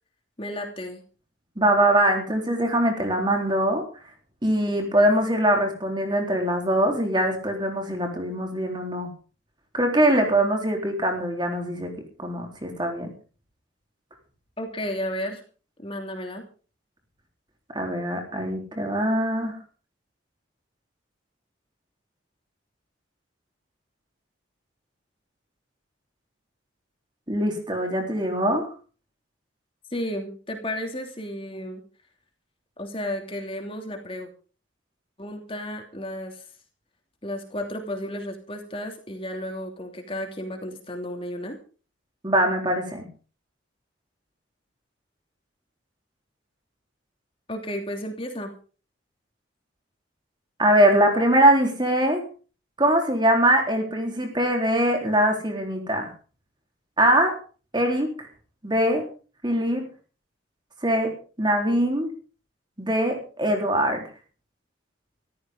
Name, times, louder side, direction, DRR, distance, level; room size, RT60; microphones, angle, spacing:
voice 1, 0.4-1.0 14.6-15.4 15.8-16.4 29.9-31.8 32.8-34.3 35.2-36.4 37.2-41.6 47.5-48.5, left 1 dB, 25° left, 3 dB, 3.0 m, -33 dB
voice 2, 1.6-3.9 4.4-9.1 9.7-11.9 12.2-13.1 17.7-19.6 27.3-28.7 42.2-43.0 50.6-52.2 52.8-56.1 57.0-57.4 57.7-58.1 58.6-59.1 59.4-59.9 60.8-62.1 62.8-64.0, right 1 dB, 20° right, 3 dB, 3.7 m, -22 dB
14.5 x 14.0 x 5.3 m, 0.39 s
head